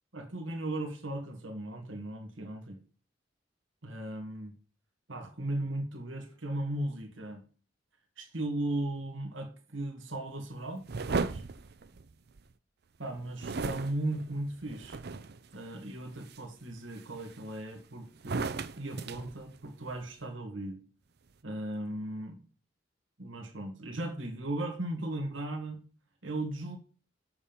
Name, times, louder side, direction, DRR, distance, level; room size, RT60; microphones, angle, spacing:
voice 1, 0.1-2.8 3.8-4.5 5.1-7.4 8.2-11.4 13.0-15.0 15.5-18.5 18.8-20.8 21.4-22.4 23.2-25.8 26.2-26.8, right 1 dB, 90° right, 4 dB, 2.0 m, -37 dB
sound 1, 10.9-12.5 13.4-15.5 16.0-16.4 16.9-17.7 18.2-20.1, right 4 dB, 60° right, 0.6 m, -36 dB
7.3 x 7.0 x 5.4 m, 0.38 s
head